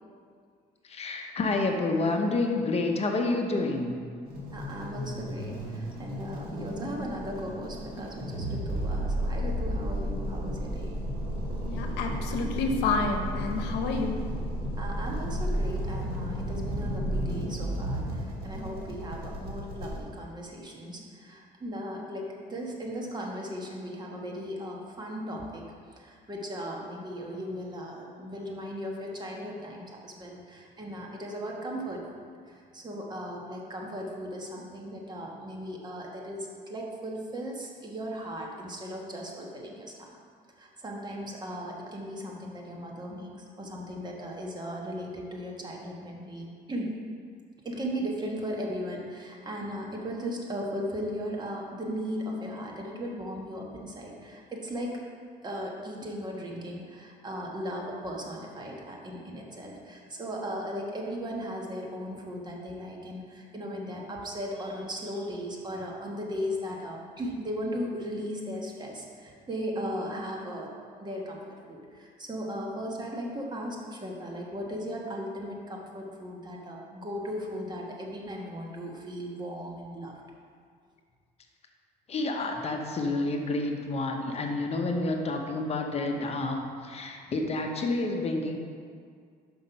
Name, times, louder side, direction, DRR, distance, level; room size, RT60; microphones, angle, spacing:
voice 1, 0.8-4.0 82.1-88.6, left 2 dB, 40° left, 3 dB, 0.9 m, -29 dB
sound 1, 4.3-20.0, equal, 65° right, 1.8 m, -33 dB
voice 2, 4.5-11.0 14.8-25.6 25.9-32.1 32.5-40.2 40.6-47.0 47.6-54.9 55.4-70.7 71.0-80.1, equal, 25° right, -1 dB, 1.2 m, -37 dB
voice 3, 11.6-14.1, left 4 dB, 90° left, 4 dB, 0.8 m, -29 dB
5.7 x 5.3 x 5.6 m, 2.1 s
cardioid pair, 110°, 17 cm